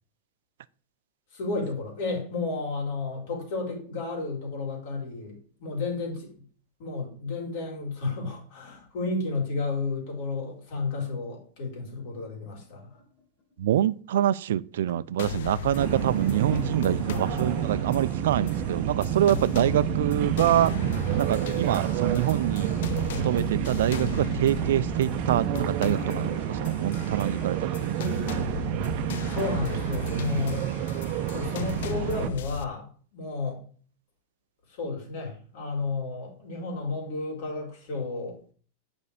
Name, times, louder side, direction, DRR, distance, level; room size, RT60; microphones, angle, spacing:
voice 1, 1.3-6.3 6.8-13.0 29.3-30.6 31.3-32.9 33.1-33.6 34.8-38.4, left 3 dB, 60° left, 4.0 m, -32 dB
sound 1, 12.0-13.6 14.9-15.1 15.9-16.7 17.0-17.4 17.6-19.8 20.5-23.4 23.7-28.7, left 3 dB, 30° left, 2.0 m, -46 dB
voice 2, 13.6-20.9 21.1-22.7 23.2-28.1, right 11 dB, 80° right, 0.5 m, -26 dB
sound 2, 15.2-32.6, left 8 dB, 75° left, 0.6 m, -37 dB
sound 3, 15.7-32.3, right 11 dB, 45° right, 0.8 m, -29 dB
8.4 x 5.4 x 5.0 m
supercardioid pair, 150°, 0 cm